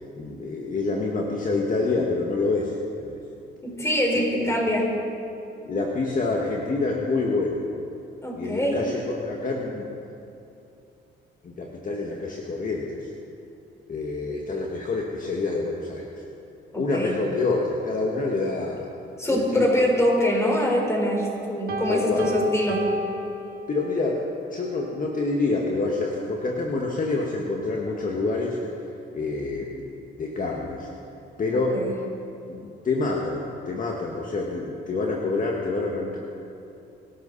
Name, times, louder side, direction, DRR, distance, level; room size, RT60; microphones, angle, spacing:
voice 1, 0.2-3.2 4.3-4.5 5.7-7.6 8.3-9.9 11.4-13.1 13.9-16.2 16.8-18.8 19.3-19.7 21.9-22.3 23.7-24.2 24.5-28.6 29.1-29.8 30.2-30.9 31.4-31.8 32.5-36.2, left 3 dB, 40° left, -1 dB, 1.7 m, -27 dB
voice 2, 3.6-4.9 8.2-8.8 16.7-17.1 19.2-22.8 31.7-31.9, left 1 dB, 15° left, -1 dB, 4.7 m, -24 dB
Piano, 21.7-24.1, right 1 dB, 50° right, 1.9 m, -32 dB
24.0 x 12.5 x 4.2 m, 2.7 s
cardioid pair, 90°, 20 cm